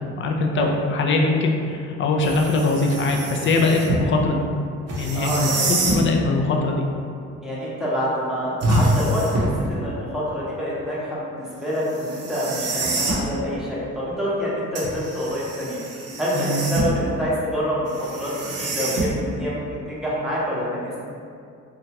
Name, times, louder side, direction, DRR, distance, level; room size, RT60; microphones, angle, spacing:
voice 1, 0.2-4.4 5.0-6.8 16.3-16.7, left 3 dB, 40° left, 1 dB, 0.4 m, -22 dB
sound 1, 2.2-4.1 4.9-6.1 8.6-9.7 11.9-13.3 14.8-17.1 17.9-19.4, right 2 dB, 55° right, 0.6 m, -26 dB
voice 2, 5.1-5.6 7.4-15.8 16.2-21.0, equal, ahead, -8 dB, 0.8 m, -27 dB
2.7 x 2.3 x 2.8 m, 2.4 s
cardioid pair, 90°, 30 cm